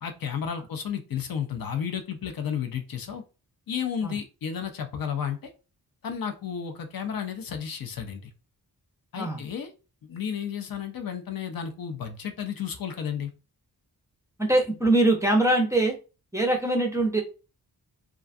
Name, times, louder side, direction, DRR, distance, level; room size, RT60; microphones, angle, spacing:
voice 1, 0.0-3.2 3.7-5.5 6.0-8.3 9.1-9.7 10.0-13.3, left 8 dB, 60° left, 6 dB, 0.5 m, -32 dB
voice 2, 14.4-16.0 16.3-17.2, right 2 dB, 10° right, 1 dB, 0.5 m, -22 dB
2.4 x 2.2 x 2.5 m, 0.32 s
wide cardioid pair, 100°, 39 cm